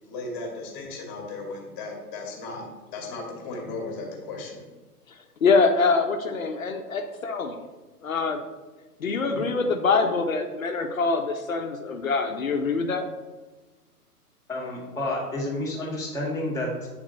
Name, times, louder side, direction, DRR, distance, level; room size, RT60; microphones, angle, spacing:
voice 1, 0.0-4.7, left 3 dB, 20° left, 0 dB, 1.1 m, -36 dB
voice 2, 5.4-7.6 8.0-8.4 9.0-13.0, left 4 dB, 60° left, 5 dB, 0.8 m, -24 dB
voice 3, 14.5-16.9, left 1 dB, ahead, -15 dB, 0.5 m, -30 dB
8.8 x 3.5 x 3.1 m, 1.2 s
figure-of-eight pair, 120°, 47 cm